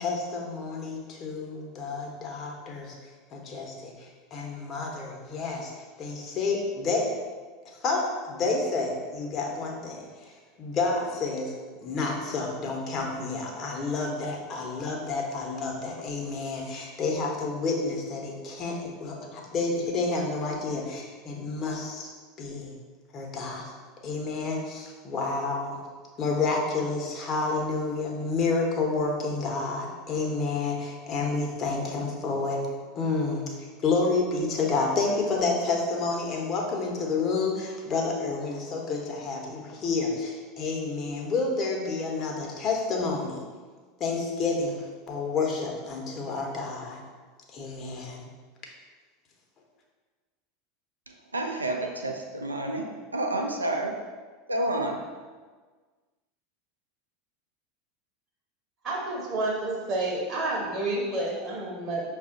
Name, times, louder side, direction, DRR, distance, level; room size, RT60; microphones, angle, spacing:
voice 1, 0.0-7.1 7.6-11.5 11.8-22.1 22.4-22.7 23.1-23.8 24.0-25.8 26.2-32.7 32.9-33.5 33.8-43.4 44.0-47.0 47.5-48.3, left 3 dB, 40° left, 0 dB, 0.9 m, -29 dB
voice 2, 51.1-54.0 54.5-55.0, right 1 dB, 85° right, 2 dB, 0.5 m, -30 dB
voice 3, 58.8-62.0, right 2 dB, 40° right, -3 dB, 0.9 m, -29 dB
5.6 x 2.4 x 3.7 m, 1.4 s
figure-of-eight pair, 80°, 0 cm